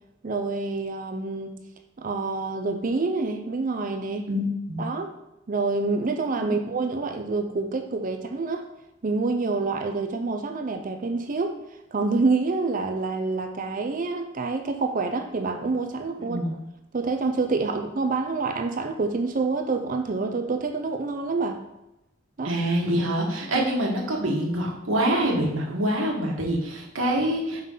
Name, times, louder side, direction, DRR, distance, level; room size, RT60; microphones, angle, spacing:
voice 1, 0.2-1.5 2.0-4.3 4.8-5.1 5.5-8.7 9.0-11.6 11.9-16.4 16.9-21.6 22.4-22.5 23.6-23.7, right 3 dB, 40° right, 6 dB, 0.5 m, -27 dB
voice 2, 4.3-4.8 6.4-6.5 16.2-16.5 22.4-27.6, right 1 dB, 75° right, -1 dB, 1.4 m, -25 dB
5.5 x 3.7 x 5.5 m, 0.92 s
head